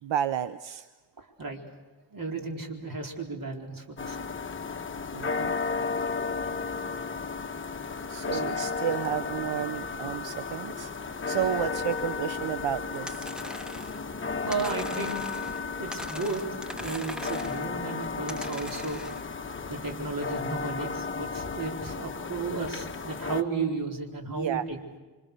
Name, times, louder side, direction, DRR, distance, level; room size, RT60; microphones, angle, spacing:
voice 1, 0.0-0.9 5.1-5.5 8.1-10.9 11.3-13.3 19.6-19.7 24.3-24.6, right 10 dB, 80° right, 12 dB, 0.8 m, -31 dB
voice 2, 1.2-1.6 2.1-4.3 4.9-5.0 6.5-6.6 8.3-8.6 14.4-15.5 15.8-16.5 16.8-19.0 19.7-24.8, right 4 dB, 50° right, 1 dB, 4.3 m, -34 dB
sound 1, 4.0-23.4, left 5 dB, 25° left, 1.1 m, -34 dB
sound 2, 13.1-14.0 14.5-15.6 15.9-17.6 18.3-19.2, left 1 dB, ahead, 1.1 m, -41 dB
27.0 x 25.5 x 6.8 m, 1.3 s
wide cardioid pair, 125°, 44 cm